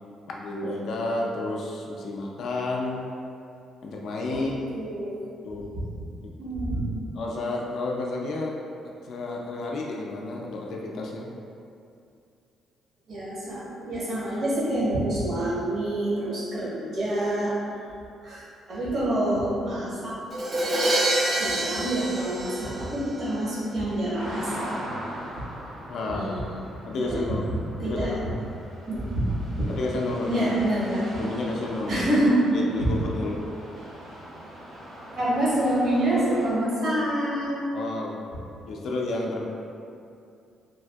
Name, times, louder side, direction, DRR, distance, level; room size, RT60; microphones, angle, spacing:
voice 1, 0.3-3.0 3.8-4.5 5.4-5.9 7.2-8.6 9.0-11.3 25.9-26.4 26.8-27.5 27.8-28.4 29.7-30.5 31.2-32.1 32.5-33.4 37.7-38.2 38.7-39.5, left 2 dB, 65° left, -1 dB, 0.3 m, -31 dB
voice 2, 4.3-5.2 6.4-7.1 13.1-17.6 18.2-20.2 21.4-24.7 25.4-25.5 26.0-26.6 27.0-28.2 28.8-29.6 30.3-31.0 31.9-32.4 32.8-32.9 35.2-37.6, right 1 dB, 60° right, -8 dB, 1.1 m, -27 dB
Crash cymbal, 20.3-23.3, right 1 dB, 40° right, 0.3 m, -26 dB
sound 1, 24.1-36.5, equal, 80° right, 0.9 m, -41 dB
3.3 x 2.5 x 2.3 m, 2.5 s
cardioid pair, 90°, 0 cm